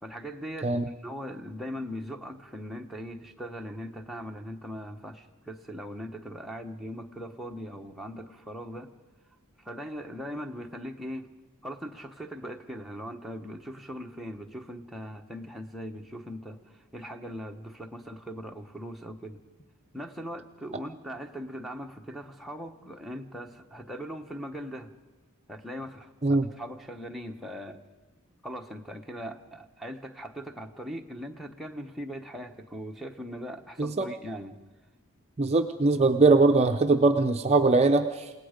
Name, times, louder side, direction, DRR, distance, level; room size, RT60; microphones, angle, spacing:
voice 1, 0.0-8.9 9.6-11.3 11.6-19.4 19.9-24.9 25.5-27.8 28.4-34.6, equal, ahead, 1 dB, 1.0 m, -40 dB
voice 2, 35.4-38.3, right 3 dB, 30° right, 6 dB, 0.5 m, -21 dB
28.5 x 17.5 x 5.1 m, 1.2 s
head